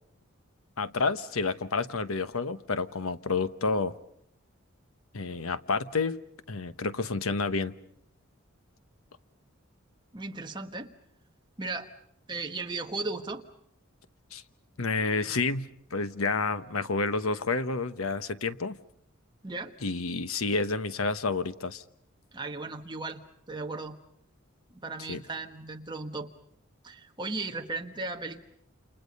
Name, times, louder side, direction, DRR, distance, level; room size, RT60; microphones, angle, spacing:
voice 1, 0.8-3.9 5.1-6.2 6.5-7.7 14.3-14.4 14.8-18.8 19.8-21.8 25.1-25.2, left 4 dB, 90° left, 13 dB, 1.0 m, -29 dB
voice 2, 10.1-10.9 11.6-11.9 12.3-13.4 19.4-19.7 22.3-24.0 24.7-26.3 26.8-28.4, right 3 dB, 20° right, 4 dB, 1.5 m, -36 dB
28.5 x 28.5 x 5.4 m, 0.67 s
head